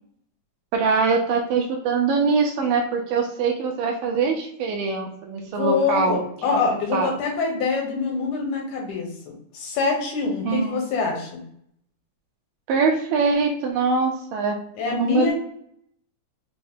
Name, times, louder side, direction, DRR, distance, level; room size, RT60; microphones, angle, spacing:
voice 1, 0.7-6.2 6.9-7.1 10.4-10.8 12.7-14.6 14.8-15.3, right 4 dB, 85° right, 1 dB, 2.4 m, -23 dB
voice 2, 5.5-11.4 14.8-15.3, left 4 dB, 70° left, 0 dB, 2.3 m, -25 dB
5.6 x 2.0 x 3.5 m, 0.69 s
omnidirectional pair, 3.9 m